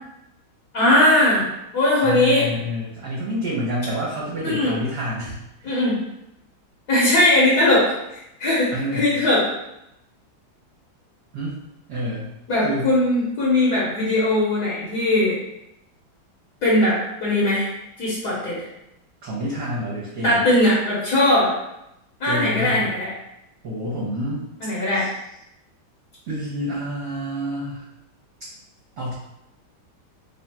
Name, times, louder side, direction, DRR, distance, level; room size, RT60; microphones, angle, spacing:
voice 1, 0.7-1.5 1.7-2.5 4.4-4.7 5.6-6.0 6.9-7.9 8.4-9.4 12.5-15.4 16.6-17.7 18.0-18.6 20.2-21.6 22.2-23.1 24.6-25.0, left 1 dB, 60° left, -7 dB, 1.4 m, -19 dB
voice 2, 2.0-5.8 8.7-9.1 11.3-11.6 11.9-12.3 12.6-12.9 19.2-20.4 22.2-22.9 23.6-24.4 24.9-25.1 26.3-27.9 29.0-29.1, equal, 60° right, -7 dB, 1.3 m, -28 dB
3.5 x 2.4 x 4.2 m, 0.85 s
omnidirectional pair, 2.2 m